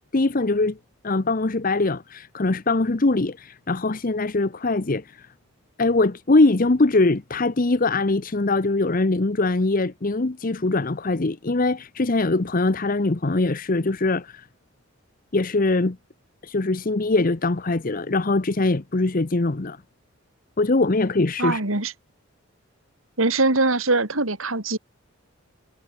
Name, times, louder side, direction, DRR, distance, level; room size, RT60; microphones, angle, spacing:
voice 1, 0.1-0.8 1.0-5.3 5.8-14.5 15.3-16.0 16.4-19.8 20.6-21.6, left 2 dB, 40° left, 0.8 m, -22 dB
voice 2, 21.4-21.9 23.2-24.8, right 2 dB, 75° right, 3.6 m, -22 dB
head